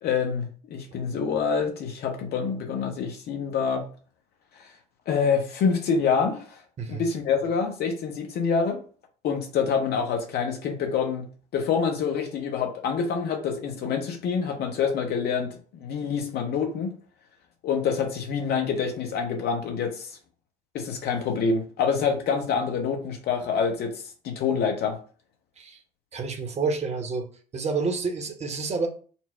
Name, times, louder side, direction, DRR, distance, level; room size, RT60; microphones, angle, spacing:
voice 1, 0.0-3.8 5.1-6.5 6.9-8.8 9.2-11.2 11.5-16.9 17.6-20.1 20.7-23.9 24.2-25.0, left 6 dB, 55° left, 5 dB, 0.9 m, -26 dB
voice 2, 26.1-27.3 27.5-28.9, right 4 dB, 35° right, 4 dB, 0.9 m, -29 dB
4.3 x 2.0 x 4.3 m, 0.42 s
hypercardioid pair, 55°, 20 cm